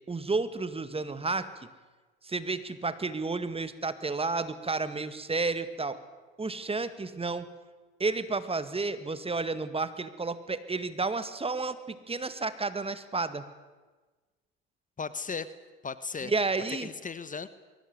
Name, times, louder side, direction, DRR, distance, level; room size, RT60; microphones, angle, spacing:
voice 1, 0.1-1.5 2.2-6.0 6.4-7.5 8.0-13.5 16.2-16.9, right 3 dB, 20° right, 13 dB, 1.9 m, -31 dB
voice 2, 15.0-15.5 15.8-16.3 16.8-17.5, left 5 dB, 25° left, 14 dB, 1.4 m, -36 dB
22.5 x 17.5 x 9.5 m, 1.3 s
hypercardioid pair, 75°, 29 cm